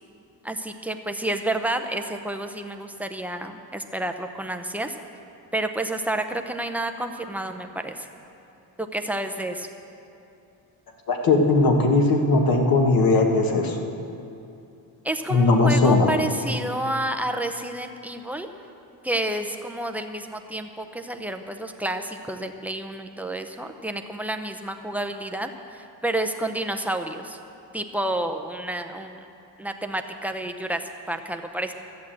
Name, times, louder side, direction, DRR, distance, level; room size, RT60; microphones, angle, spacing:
voice 1, 0.4-5.0 5.5-8.1 8.8-9.7 15.0-18.5 19.0-27.4 27.7-29.2 29.6-31.7, right 1 dB, 5° right, 6 dB, 0.7 m, -30 dB
voice 2, 11.1-13.8 15.3-16.1, left 3 dB, 50° left, 3 dB, 1.6 m, -19 dB
13.0 x 8.4 x 7.6 m, 2.7 s
cardioid pair, 120°, 45 cm